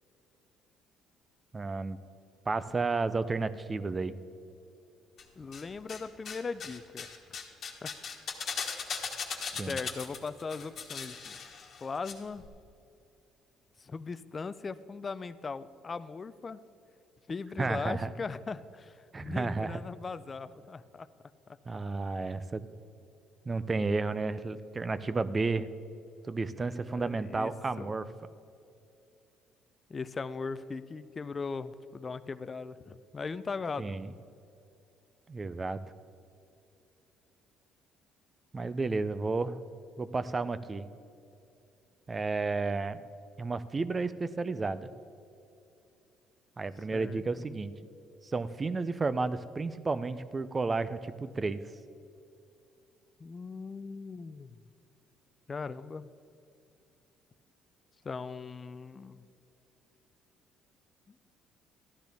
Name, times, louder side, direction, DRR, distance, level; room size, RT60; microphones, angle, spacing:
voice 1, 1.5-2.0 2.5-4.2 9.6-9.8 17.6-18.1 19.1-19.8 21.7-22.6 23.5-25.7 26.3-28.1 33.8-34.1 35.3-35.8 38.5-39.6 40.0-40.9 42.1-43.0 43.4-44.9 46.6-47.7 48.2-51.6, right 3 dB, 25° right, 14 dB, 0.5 m, -32 dB
sound 1, 5.2-6.0 6.2-12.1 12.4-12.5, left 5 dB, 50° left, 1.4 m, -39 dB
voice 2, 5.4-7.1 7.8-7.9 9.5-11.4 11.8-12.4 13.8-16.6 17.3-21.1 26.6-27.5 27.8-28.0 29.9-34.0 46.9-47.5 53.2-54.6 55.5-56.1 58.0-59.2 61.1-61.2, left 4 dB, 30° left, 14 dB, 0.4 m, -39 dB
13.5 x 11.5 x 3.5 m, 2.7 s
cardioid pair, 110°, 0 cm